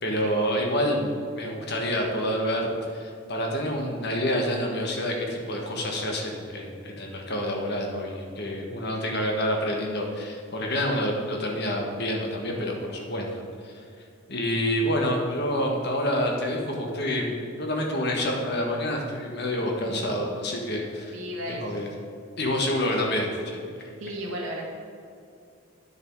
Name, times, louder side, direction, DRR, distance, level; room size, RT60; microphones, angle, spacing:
voice 1, 0.0-13.7 14.3-17.3 17.6-21.2 21.5-21.9 22.4-23.6, equal, 50° left, 1 dB, 1.5 m, -28 dB
voice 2, 19.8-20.2 21.1-21.7 24.0-24.6, equal, 80° right, -2 dB, 2.0 m, -34 dB
9.7 x 7.0 x 4.7 m, 2.4 s
head